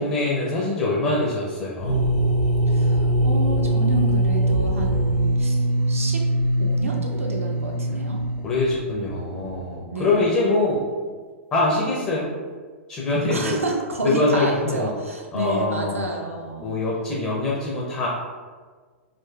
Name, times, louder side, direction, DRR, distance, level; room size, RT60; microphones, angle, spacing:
voice 1, 0.0-2.0 7.9-8.0 8.4-10.9 11.5-12.3 12.9-13.6 14.0-14.9 15.3-16.1 16.6-18.1, left 2 dB, 25° left, -5 dB, 0.6 m, -24 dB
sound 1, 1.8-9.5, right 1 dB, 60° left, 0.9 m, -22 dB
voice 2, 2.7-6.2 6.6-8.2 9.9-10.2 13.3-16.7, right 1 dB, 80° right, 1 dB, 0.6 m, -29 dB
3.8 x 2.4 x 2.3 m, 1.5 s
figure-of-eight pair, 105°, 7 cm